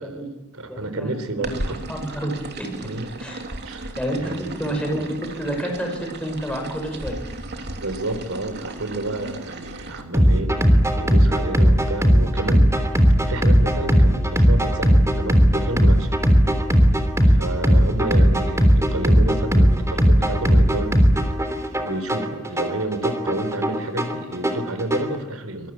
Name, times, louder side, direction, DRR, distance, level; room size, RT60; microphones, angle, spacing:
voice 1, 0.0-1.8 2.8-3.2 3.6-3.9 4.2-4.5 7.8-13.0 13.3-16.1 17.3-21.3 21.8-25.7, right 1 dB, 80° right, 10 dB, 4.2 m, -30 dB
voice 2, 0.7-2.7 3.2-3.4 4.0-7.2, right 1 dB, 5° left, 1 dB, 6.5 m, -29 dB
sound 1, 1.4-10.0, right 2 dB, 55° right, 3.2 m, -35 dB
sound 2, 10.1-25.1, equal, 15° right, 3.3 m, -17 dB
25.0 x 22.5 x 8.9 m, 1.1 s
head